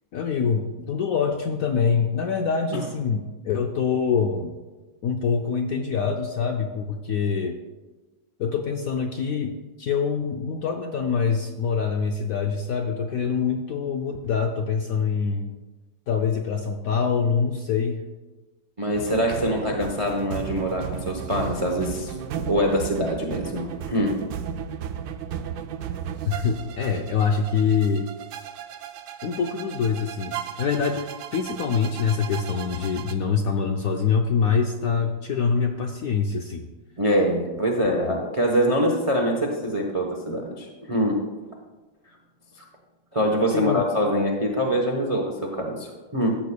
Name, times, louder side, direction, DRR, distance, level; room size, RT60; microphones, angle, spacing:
voice 1, 0.1-4.5 5.0-7.6 8.4-15.5 16.1-18.0 26.2-28.0 29.2-31.1 31.3-36.7 38.0-38.2 43.5-43.8, left 6 dB, 80° left, 4 dB, 0.7 m, -25 dB
voice 2, 18.8-24.1 37.0-41.2 42.6-42.7 43.1-46.4, equal, 30° right, 1 dB, 0.6 m, -24 dB
sound 1, 18.9-33.1, right 8 dB, 75° right, 1.0 m, -35 dB
14.0 x 8.2 x 2.3 m, 1.2 s
omnidirectional pair, 2.1 m